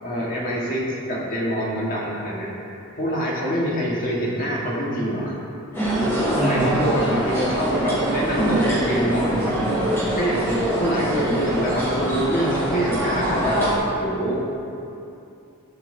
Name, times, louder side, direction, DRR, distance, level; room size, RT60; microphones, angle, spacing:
voice 1, 0.0-2.6 2.9-5.4 6.3-9.6 10.2-13.7 14.0-14.4, equal, 40° left, -5 dB, 1.5 m, -25 dB
sound 1, 5.7-13.8, right 1 dB, 10° left, 1.6 m, -24 dB
voice 2, 6.4-7.1, right 1 dB, 5° right, -7 dB, 1.3 m, -26 dB
12.0 x 5.8 x 2.7 m, 2.7 s
head